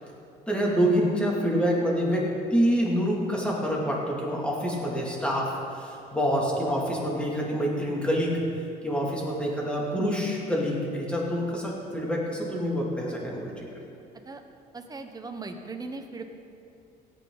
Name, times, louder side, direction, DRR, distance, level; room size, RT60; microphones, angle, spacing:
voice 1, 0.5-5.5 5.8-8.4 8.8-13.7, equal, 5° left, -3 dB, 2.7 m, -26 dB
voice 2, 14.7-16.2, right 3 dB, 20° right, 5 dB, 1.1 m, -38 dB
17.5 x 9.0 x 4.0 m, 2.6 s
cardioid pair, 110°, 17 cm